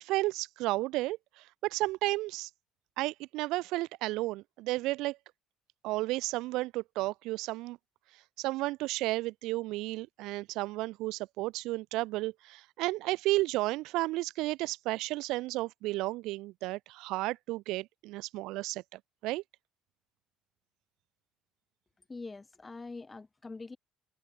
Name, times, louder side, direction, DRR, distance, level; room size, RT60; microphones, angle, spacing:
voice 1, 0.0-2.5 3.0-5.2 5.8-7.8 8.4-19.4, right 19 dB, 80° right, 0.6 m, -33 dB
voice 2, 22.1-23.8, left 3 dB, 20° left, 4.7 m, -44 dB
cardioid pair, 100°, 0 cm